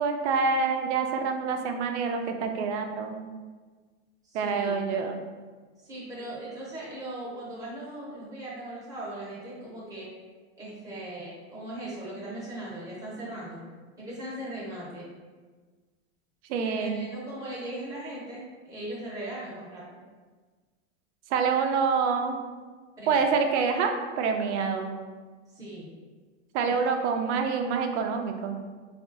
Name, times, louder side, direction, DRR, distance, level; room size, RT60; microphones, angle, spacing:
voice 1, 0.0-3.2 4.3-5.2 16.5-17.0 21.3-22.4 23.1-24.9 26.5-28.7, right 5 dB, 70° right, 5 dB, 0.5 m, -27 dB
voice 2, 4.2-4.8 5.8-10.1 10.6-13.6 14.0-15.1 16.5-20.0 23.0-23.2 25.5-25.9 26.6-27.1, right 1 dB, 10° right, -7 dB, 0.7 m, -39 dB
3.7 x 2.4 x 2.4 m, 1.4 s
supercardioid pair, 160°, 35 cm